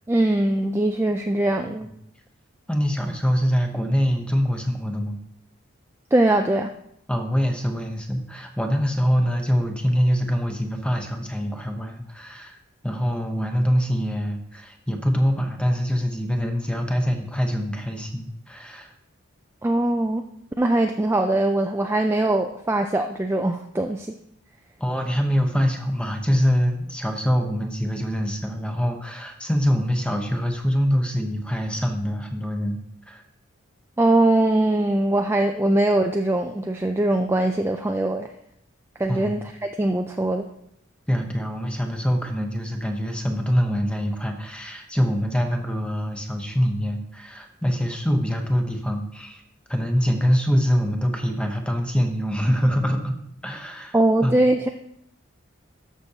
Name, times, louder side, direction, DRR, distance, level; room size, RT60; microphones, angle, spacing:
voice 1, 0.1-1.9 6.1-6.7 19.6-20.2 20.6-24.1 34.0-38.3 39.0-40.4 53.9-54.7, right 1 dB, 10° right, 4 dB, 0.3 m, -21 dB
voice 2, 2.7-5.2 7.1-12.6 12.8-18.9 24.8-32.8 33.1-33.2 39.1-39.4 41.1-49.4 49.7-53.2 53.4-54.0 54.2-54.3, equal, 5° left, 4 dB, 0.8 m, -24 dB
13.0 x 6.0 x 2.8 m, 0.74 s
head